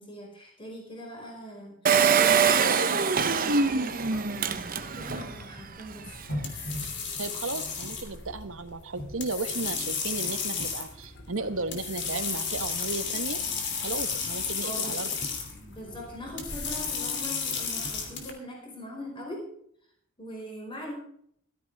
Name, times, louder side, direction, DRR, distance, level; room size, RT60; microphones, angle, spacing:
voice 1, 0.0-6.1 14.6-15.0 15.7-19.4 20.2-20.9, equal, 25° left, -1 dB, 5.1 m, -41 dB
Engine, 1.9-5.3 5.8-5.9 6.1-6.2, right 6 dB, 40° right, 0.9 m, -23 dB
sound 1, 3.5-18.3, left 5 dB, 55° left, 2.9 m, -34 dB
voice 2, 7.2-13.4 13.8-15.1, right 3 dB, 65° right, 10 dB, 1.2 m, -34 dB
15.5 x 14.0 x 3.5 m, 0.65 s
head